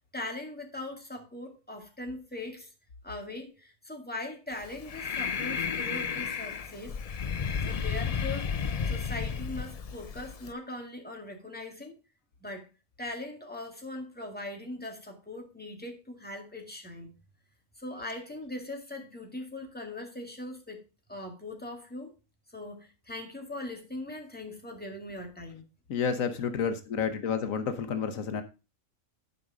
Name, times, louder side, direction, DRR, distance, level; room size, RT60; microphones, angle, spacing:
voice 1, 0.1-2.7 3.0-7.0 7.6-8.5 8.9-11.9 12.4-12.7 13.0-17.1 17.8-20.8 21.1-22.1 22.5-25.6, left 2 dB, 5° left, 2.1 m, -40 dB
Breathing, 4.5-10.5, left 6 dB, 60° left, 0.4 m, -33 dB
voice 2, 25.9-28.4, left 6 dB, 85° left, 1.4 m, -30 dB
11.0 x 5.3 x 4.9 m
omnidirectional pair, 1.4 m